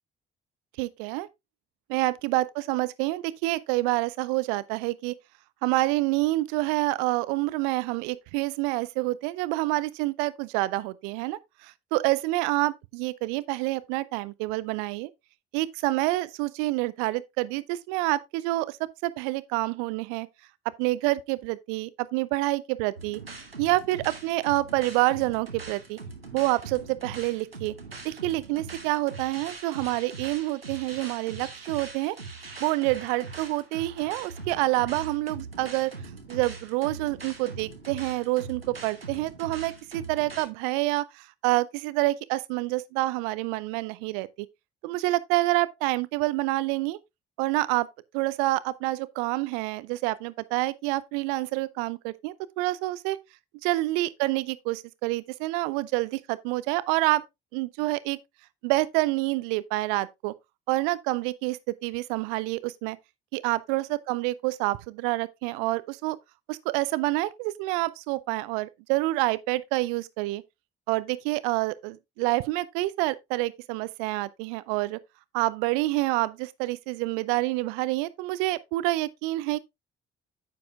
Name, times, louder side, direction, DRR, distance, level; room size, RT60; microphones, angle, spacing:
voice 1, 0.8-1.3 1.9-5.1 5.6-15.1 15.5-18.8 19.0-20.3 20.8-23.2 23.6-26.0 26.3-27.7 28.0-32.2 32.6-35.9 36.3-44.5 44.8-47.0 47.4-47.9 48.1-53.2 53.6-57.2 57.5-58.2 58.6-60.3 60.7-63.0 63.3-66.2 66.5-70.4 70.9-75.0 75.3-79.6, right 19 dB, 65° right, 0.6 m, -27 dB
sound 1, 23.0-40.5, right 4 dB, 90° right, 0.9 m, -42 dB
9.4 x 7.8 x 2.4 m
figure-of-eight pair, 45°, 29 cm